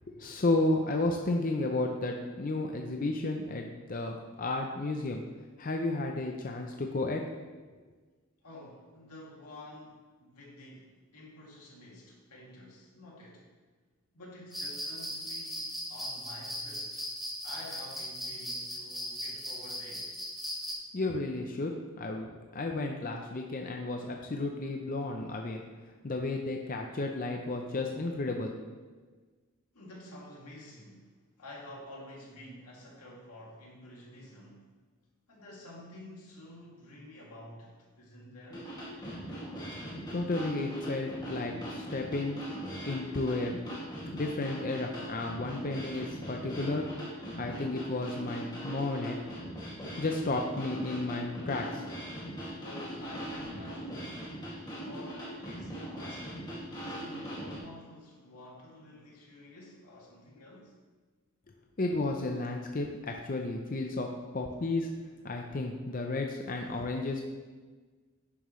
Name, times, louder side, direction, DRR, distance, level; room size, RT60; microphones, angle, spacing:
voice 1, 0.1-5.2 5.6-7.3 20.9-21.7 22.0-25.6 26.0-28.6 40.1-42.4 42.9-43.6 44.1-46.9 47.4-49.2 50.0-51.8 61.8-64.1 64.3-64.9 65.2-67.2, left 2 dB, 40° left, 2 dB, 0.6 m, -32 dB
voice 2, 8.4-13.5 14.1-17.1 17.4-20.1 29.7-31.0 31.4-34.6 35.3-37.7 38.0-38.7 52.6-54.2 54.5-60.7, left 1 dB, 90° left, -4 dB, 2.5 m, -50 dB
sound 1, 14.5-20.7, equal, ahead, 1.3 m, -38 dB
sound 2, 38.5-57.6, right 1 dB, 20° left, 2.2 m, -40 dB
10.5 x 7.4 x 3.2 m, 1.4 s
head